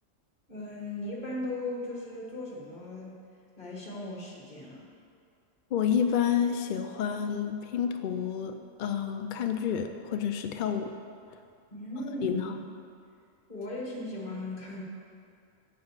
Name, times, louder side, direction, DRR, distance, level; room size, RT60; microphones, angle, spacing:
voice 1, 0.5-3.2 3.6-4.9 11.7-12.6 13.5-14.8, left 1 dB, 40° left, -3 dB, 1.9 m, -37 dB
voice 2, 5.7-8.5 8.8-10.9 12.2-12.5, left 8 dB, 65° left, 6 dB, 0.5 m, -29 dB
8.7 x 5.9 x 7.3 m, 2.4 s
omnidirectional pair, 1.3 m